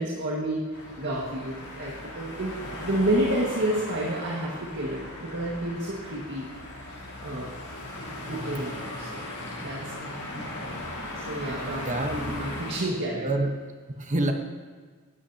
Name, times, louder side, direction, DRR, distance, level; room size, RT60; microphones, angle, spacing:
voice 1, 0.0-6.5 6.8-6.9 7.2-7.5 8.2-9.2 9.6-10.0 11.2-11.9 12.3-13.2, right 1 dB, 55° right, -4 dB, 1.8 m, -30 dB
sound 1, 0.7-12.8, left 1 dB, 85° left, 3.7 m, -38 dB
voice 2, 11.5-12.4 13.2-13.5 14.0-14.3, right 1 dB, 35° right, 4 dB, 1.1 m, -28 dB
18.0 x 12.5 x 2.9 m, 1.5 s
head